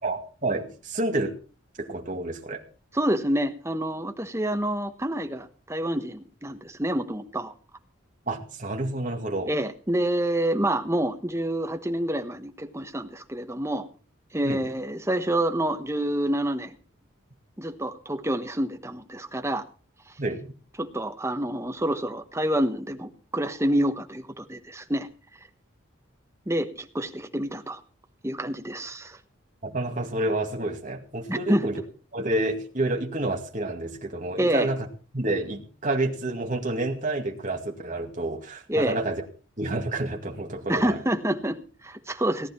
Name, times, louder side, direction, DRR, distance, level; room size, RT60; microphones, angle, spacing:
voice 1, 0.0-1.3 1.8-2.6 8.3-9.5 14.4-14.7 20.2-20.5 29.6-31.8 32.1-34.9 35.1-39.2 39.6-41.0, right 2 dB, 35° right, 1 dB, 2.2 m, -29 dB
voice 2, 2.9-7.5 9.4-13.9 14.3-16.7 17.6-19.6 20.8-25.1 26.5-27.8 28.2-29.2 31.3-31.6 34.4-34.7 38.7-39.0 40.7-42.5, right 1 dB, 15° right, 6 dB, 1.2 m, -27 dB
18.0 x 10.5 x 4.5 m, 0.39 s
head